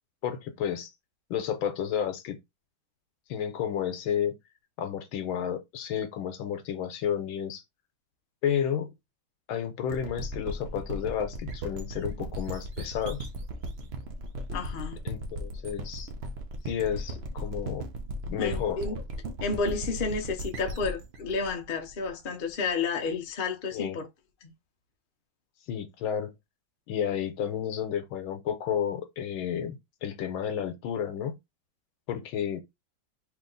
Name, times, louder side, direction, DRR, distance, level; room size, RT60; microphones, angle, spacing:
voice 1, 0.2-0.9 1.3-2.4 3.3-4.3 4.8-7.6 8.4-8.9 9.5-13.3 15.0-16.1 16.7-17.8 18.3-18.8 23.7-24.0 25.7-26.3 26.9-31.4 32.1-32.6, left 8 dB, 85° left, 1.5 m, -31 dB
sound 1, 9.9-22.5, right 1 dB, 80° right, 0.5 m, -37 dB
voice 2, 14.5-15.0 18.4-19.0 19.4-24.1 24.4-24.5, left 4 dB, 55° left, 0.5 m, -31 dB
3.4 x 2.9 x 3.8 m
omnidirectional pair, 2.2 m